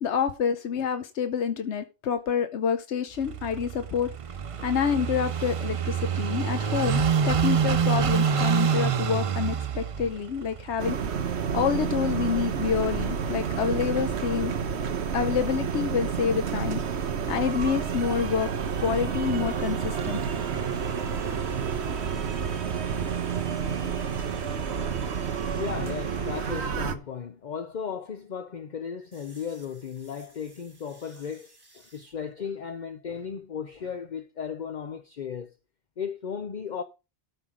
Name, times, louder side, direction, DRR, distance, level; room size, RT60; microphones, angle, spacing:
voice 1, 0.0-4.1 4.6-11.3 11.5-14.5 15.1-18.5 18.8-20.3, left 7 dB, 85° left, 1.1 m, -28 dB
Car passing by / Idling, 3.2-13.8, right 6 dB, 45° right, 0.5 m, -28 dB
sound 1, 10.8-26.9, right 7 dB, 75° right, 1.2 m, -29 dB
sound 2, 19.9-27.0 29.1-32.1, right 1 dB, 20° right, 1.4 m, -49 dB
voice 2, 25.4-35.5 36.0-36.8, left 7 dB, 45° left, 0.8 m, -36 dB
13.0 x 5.6 x 4.9 m
omnidirectional pair, 1.1 m